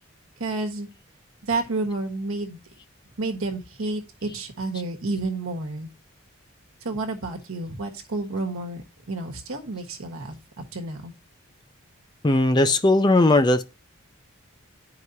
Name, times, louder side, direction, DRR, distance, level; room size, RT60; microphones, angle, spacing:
voice 1, 0.4-0.9 1.4-2.6 3.2-5.9 6.8-11.1, right 2 dB, 80° right, 1.2 m, -30 dB
voice 2, 12.2-13.6, left 2 dB, 20° left, 0.5 m, -18 dB
11.0 x 4.8 x 2.7 m
head